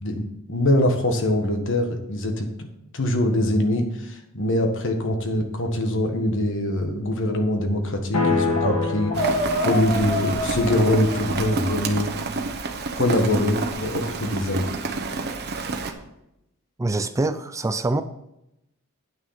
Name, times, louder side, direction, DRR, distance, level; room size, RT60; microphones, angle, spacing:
voice 1, 0.0-2.7 2.9-12.1 13.0-14.7, left 1 dB, 60° left, 5 dB, 1.4 m, -23 dB
sound 1, 8.1-12.2, left 4 dB, 75° left, 2.1 m, -29 dB
sound 2, 8.6-8.8 9.1-11.9, equal, 45° left, 2.2 m, -28 dB
Rain, 9.1-15.9, right 3 dB, 50° right, 1.0 m, -29 dB
voice 2, 16.8-18.0, right 2 dB, 15° right, 10 dB, 0.4 m, -24 dB
9.4 x 6.1 x 5.7 m, 0.85 s
head